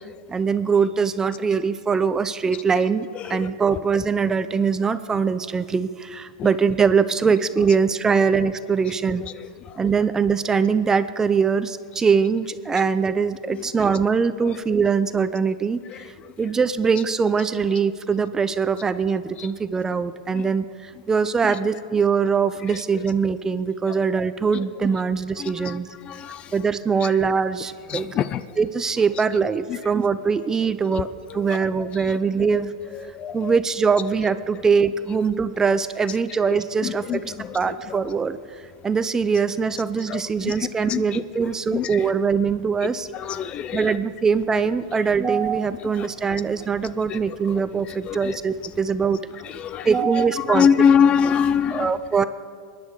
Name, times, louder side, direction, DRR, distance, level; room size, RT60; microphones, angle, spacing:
voice 1, 0.3-9.2 9.8-16.1 16.4-25.9 26.5-28.1 28.6-31.1 31.3-32.7 33.3-37.2 37.5-38.4 38.8-43.1 43.7-49.2 49.8-50.7 51.7-52.3, right 5 dB, 15° right, 13 dB, 0.6 m, -22 dB
voice 2, 3.1-3.8 6.4-6.5 7.3-7.4 7.7-7.8 8.1-8.2 8.8-9.3 13.5-13.7 15.9-16.0 16.9-17.0 19.4-19.5 20.3-20.4 21.4-21.6 22.7-22.8 24.5-24.6 25.4-25.7 26.1-26.4 27.0-27.1 27.9-28.4 29.1-29.2 29.7-29.8 31.3-31.6 32.1-32.2 32.5-32.6 32.9-33.6 36.1-36.2 36.5-38.0 40.1-40.5 40.9-42.1 43.1-44.0 46.0-46.4 47.1-47.2 47.5-47.6 48.1-48.4 49.4-50.1 50.4-51.9, left 7 dB, 30° left, 15 dB, 0.5 m, -25 dB
22.0 x 10.5 x 4.7 m, 2.1 s
hypercardioid pair, 125°, 4 cm